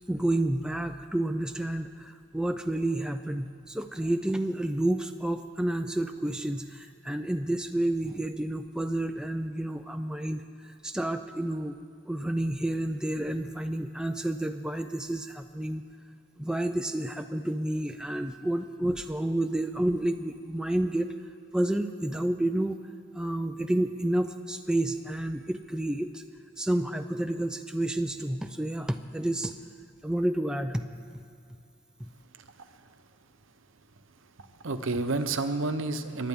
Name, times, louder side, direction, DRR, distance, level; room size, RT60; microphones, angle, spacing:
voice 1, 0.1-11.8 12.0-15.8 16.4-21.1 21.5-22.8 23.1-26.2 26.6-29.5 30.0-30.8 32.0-32.1, right 1 dB, 5° right, 6 dB, 0.3 m, -30 dB
voice 2, 34.6-36.3, right 3 dB, 70° right, 9 dB, 0.9 m, -30 dB
27.5 x 11.5 x 3.6 m, 2.3 s
head